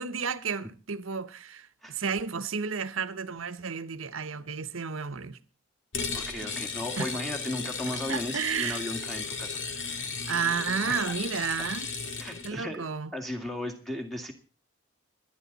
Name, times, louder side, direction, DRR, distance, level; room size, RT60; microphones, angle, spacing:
voice 1, 0.0-5.4 7.0-7.1 8.1-8.8 10.3-11.9 12.4-13.1, right 6 dB, 75° right, 1.0 m, -32 dB
sound 1, 5.9-12.5, left 5 dB, 60° left, 2.2 m, -35 dB
voice 2, 6.1-10.0 10.9-11.1 12.2-12.8 13.1-14.3, left 1 dB, ahead, 2.1 m, -36 dB
28.0 x 10.5 x 4.1 m
head